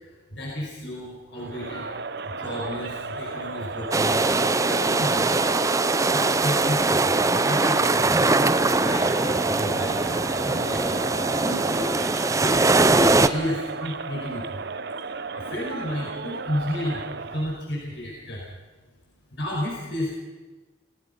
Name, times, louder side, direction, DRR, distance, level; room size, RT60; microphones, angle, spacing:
voice 1, 0.3-1.9 2.3-4.3 4.6-5.4 6.1-7.1 7.4-8.2 8.8-12.0 12.2-14.6 15.3-18.4 19.3-20.1, left 1 dB, 60° left, -3 dB, 5.4 m, -32 dB
Crowd, 1.3-17.6, right 4 dB, 60° right, 0.9 m, -34 dB
sound 1, 3.9-13.3, right 3 dB, 15° right, 0.6 m, -22 dB
27.0 x 17.5 x 5.5 m, 1.3 s
head